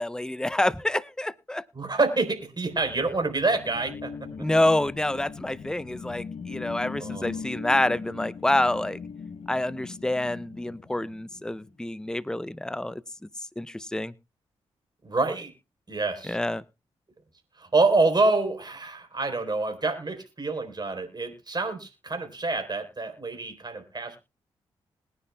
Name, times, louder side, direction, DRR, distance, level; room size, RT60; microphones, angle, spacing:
voice 1, 0.0-1.6 4.4-9.0 9.5-13.0 13.6-14.1 16.3-16.6, left 1 dB, 5° left, 18 dB, 0.7 m, -27 dB
voice 2, 1.7-4.1 7.0-7.3 15.0-15.5 15.9-16.4 17.6-24.2, right 3 dB, 35° right, 6 dB, 4.0 m, -27 dB
sound 1, 2.5-11.7, left 5 dB, 55° left, 0.8 m, -40 dB
21.0 x 10.0 x 2.2 m, 0.27 s
supercardioid pair, 40°, 12 cm